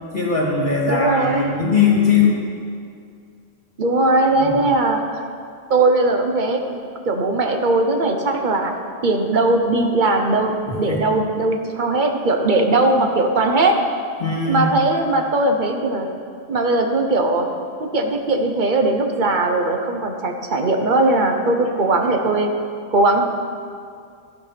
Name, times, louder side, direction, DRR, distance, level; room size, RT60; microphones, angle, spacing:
voice 1, 0.1-2.4 4.4-4.5 10.7-11.0 14.2-14.7, left 5 dB, 50° left, -2 dB, 2.3 m, -19 dB
voice 2, 0.9-1.5 3.8-5.2 5.7-8.7 9.0-13.8 14.4-16.1 16.5-17.5 17.8-22.5 22.9-23.2, right 2 dB, 50° right, 4 dB, 1.0 m, -19 dB
15.0 x 5.1 x 5.8 m, 2.3 s
omnidirectional pair, 1.1 m